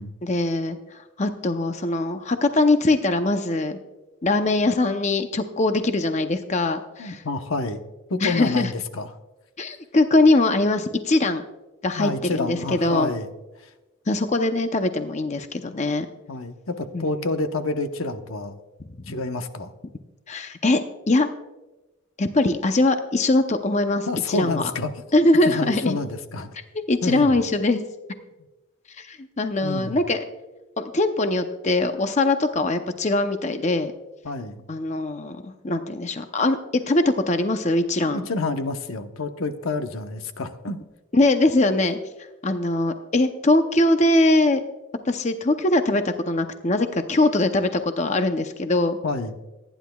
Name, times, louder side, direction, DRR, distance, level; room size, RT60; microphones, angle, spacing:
voice 1, 0.2-3.8 4.2-7.2 8.2-8.7 9.6-11.4 11.8-13.1 14.1-16.1 16.9-17.1 20.3-20.8 21.1-21.3 22.2-24.7 25.1-26.0 26.9-27.8 29.0-30.2 30.8-33.9 34.7-38.2 41.1-42.0 42.4-44.6 45.1-49.0, left 2 dB, 35° left, 7 dB, 0.7 m, -22 dB
voice 2, 7.0-7.8 8.1-9.1 12.0-13.3 13.6-13.7 16.3-18.5 19.1-19.7 24.1-24.9 25.4-26.5 27.0-27.4 29.6-30.0 34.2-34.6 38.0-40.8 49.0-49.3, left 3 dB, 80° left, 8 dB, 1.0 m, -28 dB
27.5 x 10.5 x 2.3 m, 1.1 s
head